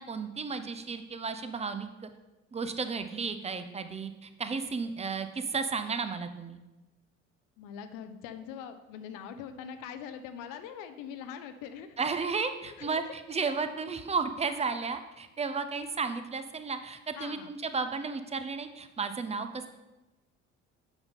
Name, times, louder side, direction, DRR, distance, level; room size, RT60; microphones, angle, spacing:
voice 1, 0.0-2.1 2.5-6.6 12.0-19.7, right 5 dB, 15° right, 10 dB, 0.6 m, -33 dB
voice 2, 7.6-12.4 12.6-13.1 17.2-17.5, left 8 dB, 55° left, 9 dB, 0.6 m, -43 dB
7.9 x 5.8 x 3.7 m, 1.0 s
figure-of-eight pair, 50°, 38 cm